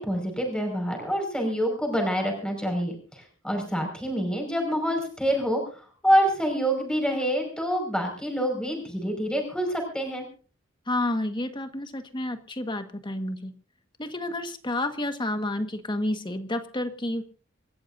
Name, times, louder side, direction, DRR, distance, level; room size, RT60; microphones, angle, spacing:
voice 1, 0.0-5.6 6.0-10.3, equal, 5° left, 2 dB, 5.3 m, -26 dB
voice 2, 10.9-13.5 14.0-17.2, left 1 dB, 25° left, 8 dB, 1.5 m, -30 dB
27.5 x 14.0 x 2.6 m, 0.39 s
head